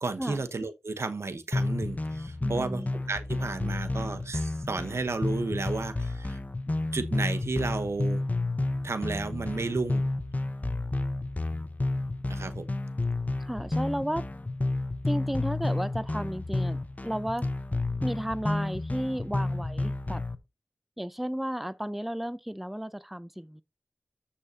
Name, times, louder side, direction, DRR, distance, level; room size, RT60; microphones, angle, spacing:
voice 1, 0.0-6.4 6.9-8.2 8.8-10.1 12.2-12.6, right 3 dB, 80° right, 1.0 m, -32 dB
sound 1, 1.5-20.3, left 2 dB, 35° left, 0.9 m, -31 dB
voice 2, 2.4-2.9 13.4-14.3 15.1-17.5 18.0-20.2 21.0-23.6, equal, 5° right, 0.5 m, -33 dB
13.5 x 5.6 x 2.8 m
wide cardioid pair, 55°, 5 cm